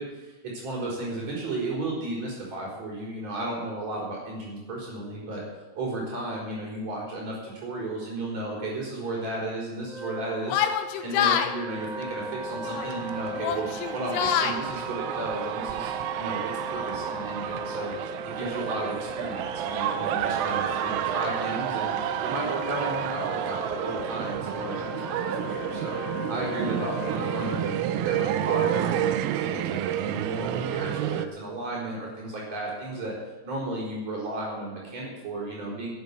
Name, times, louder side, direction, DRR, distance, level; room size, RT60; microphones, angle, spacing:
voice 1, 0.0-5.4 5.7-10.6 11.0-17.9 18.2-21.9 22.2-25.9 26.3-33.2 33.4-35.9, right 2 dB, 35° right, -7 dB, 5.3 m, -34 dB
Wind instrument woodwind instrument, 9.8-27.9, equal, 60° right, 3.8 m, -38 dB
Yell, 10.5-11.5 12.6-13.0 13.4-14.6, left 9 dB, 75° left, 3.1 m, -26 dB
sound 1, 11.8-31.3, right 11 dB, 85° right, 3.3 m, -30 dB
13.0 x 9.4 x 8.3 m, 1.2 s
omnidirectional pair, 5.9 m